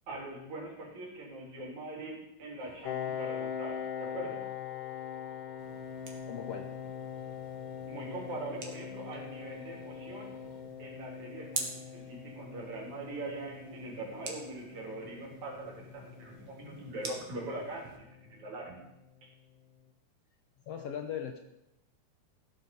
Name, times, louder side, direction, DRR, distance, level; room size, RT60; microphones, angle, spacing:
voice 1, 0.1-4.4 7.9-10.4 10.8-18.8 19.2-19.3, right 2 dB, 65° right, -1 dB, 4.7 m, -42 dB
sound 1, 2.6-10.6, left 4 dB, ahead, 4.7 m, -58 dB
Piano, 2.8-18.2, left 8 dB, 90° left, 2.5 m, -42 dB
sound 2, 5.6-18.0, right 4 dB, 45° right, 2.4 m, -47 dB
voice 2, 6.3-7.0 20.7-21.4, left 8 dB, 65° left, 6 dB, 1.7 m, -39 dB
16.5 x 7.6 x 7.0 m, 0.90 s
omnidirectional pair, 3.6 m